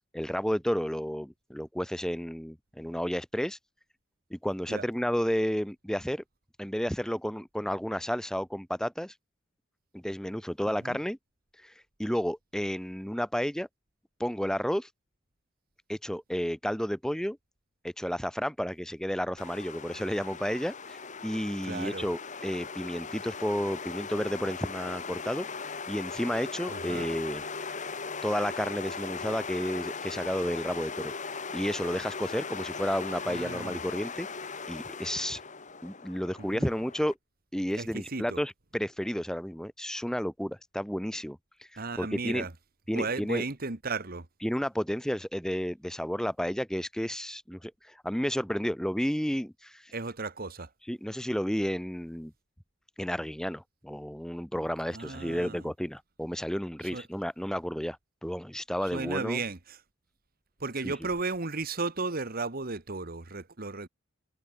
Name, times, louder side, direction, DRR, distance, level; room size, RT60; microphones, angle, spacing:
voice 1, 0.1-3.6 4.3-6.2 6.6-9.1 9.9-11.2 11.6-11.7 12.0-13.7 14.2-14.9 15.9-17.4 17.8-21.0 21.2-25.5 25.9-27.4 28.2-31.1 31.5-34.3 34.7-35.4 35.8-37.1 37.5-42.5 42.9-43.4 44.4-49.9 50.9-52.3 53.0-58.0 58.2-59.4 60.8-60.9, equal, 5° left, 0.9 m, -32 dB
sound 1, 19.4-37.1, left 5 dB, 40° left, 1.8 m, -39 dB
voice 2, 21.6-22.0 26.7-27.1 33.3-33.8 36.4-36.7 37.8-38.4 41.8-42.5 42.9-44.2 49.9-50.7 54.9-55.6 56.9-57.0 58.9-59.8 60.6-63.9, right 3 dB, 45° right, 1.6 m, -34 dB
head